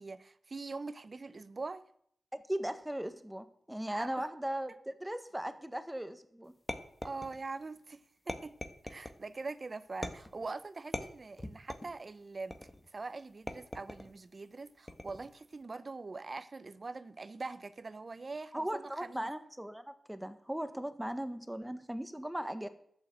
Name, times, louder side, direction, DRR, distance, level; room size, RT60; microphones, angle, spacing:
voice 1, 0.0-1.8 3.9-4.3 7.0-8.0 8.3-8.5 8.8-19.3, right 3 dB, 45° right, 0.8 m, -43 dB
voice 2, 2.3-6.5 18.5-22.7, right 1 dB, 10° right, 1.5 m, -38 dB
sound 1, 6.7-7.6 8.3-9.2 10.0-10.5 10.9-12.0 12.5-12.9 13.5-14.1 14.9-15.3, left 1 dB, 25° left, 1.5 m, -41 dB
12.0 x 8.4 x 7.7 m
cardioid pair, 55°, 0 cm